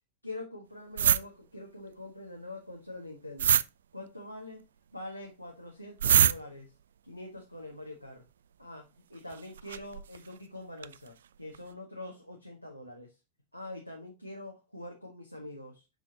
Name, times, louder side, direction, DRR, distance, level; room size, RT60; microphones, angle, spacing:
voice 1, 0.2-3.6 3.9-4.6 4.9-6.7 7.1-8.2 8.6-13.1 13.5-15.8, left 1 dB, 90° left, 0 dB, 1.4 m, -44 dB
sound 1, 1.0-1.2 3.4-3.6 6.0-6.3 9.3-10.2 10.8-11.0 11.5-11.6, right 9 dB, 65° right, 0.3 m, -23 dB
7.9 x 5.8 x 2.8 m, 0.24 s
figure-of-eight pair, 90°, 0 cm